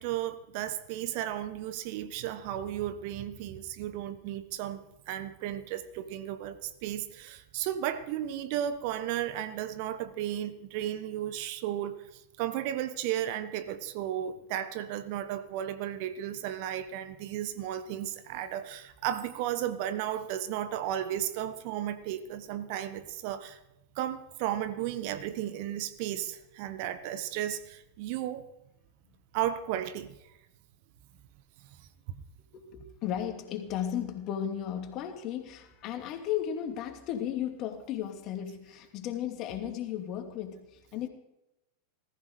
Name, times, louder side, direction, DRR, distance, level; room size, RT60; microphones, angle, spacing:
voice 1, 0.0-23.6 23.9-28.5 29.3-30.1 32.1-32.2, right 11 dB, 50° right, 12 dB, 1.2 m, -34 dB
voice 2, 32.5-41.1, left 10 dB, 40° left, 5 dB, 2.6 m, -35 dB
19.5 x 14.5 x 5.0 m, 0.91 s
figure-of-eight pair, 90°, 0 cm